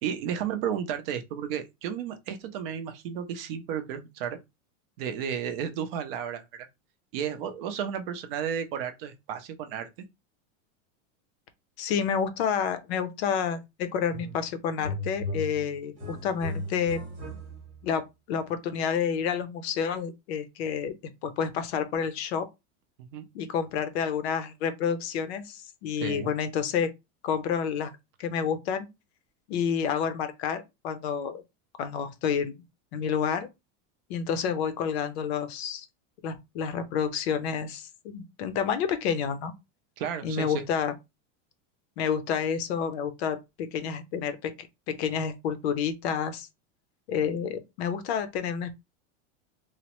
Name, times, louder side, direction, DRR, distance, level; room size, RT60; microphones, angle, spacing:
voice 1, 0.0-4.4 5.0-6.7 7.1-9.9 23.0-23.2 26.0-26.3 40.0-40.6, right 8 dB, 50° right, 0.5 m, -33 dB
voice 2, 11.8-17.0 17.8-20.9 21.2-22.5 23.3-26.9 27.2-27.9 28.2-28.9 29.5-31.4 31.8-32.5 32.9-33.5 34.1-35.9 36.2-39.5 40.2-40.9 42.0-46.5 47.1-48.7, left 7 dB, 55° left, 0.5 m, -29 dB
sound 1, 14.1-14.5 14.7-17.9, left 1 dB, 20° right, 0.9 m, -36 dB
3.1 x 2.0 x 2.9 m
supercardioid pair, 170°, 39 cm